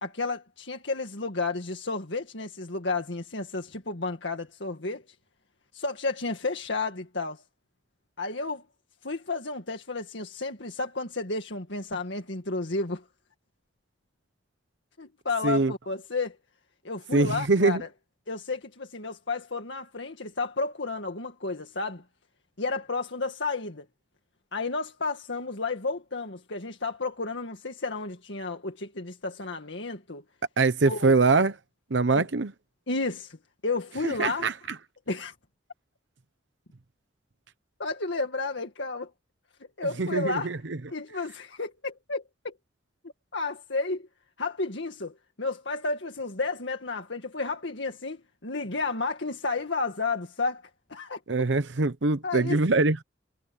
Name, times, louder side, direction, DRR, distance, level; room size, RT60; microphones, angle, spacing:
voice 1, 0.0-5.0 5.7-7.4 8.2-8.6 9.0-13.0 15.0-16.4 16.8-17.9 18.3-22.0 22.6-23.9 24.5-30.2 30.8-31.1 32.1-32.2 32.9-33.4 33.6-34.5 35.1-35.3 37.8-39.1 39.8-40.5 40.9-42.5 43.0-44.1 44.4-50.6 50.9-51.2 52.2-52.6, left 3 dB, 70° left, 2.0 m, -32 dB
voice 2, 17.1-17.8 30.6-31.5 31.9-32.5 34.0-34.5 40.0-40.6 51.3-53.0, right 3 dB, 70° right, 0.9 m, -23 dB
head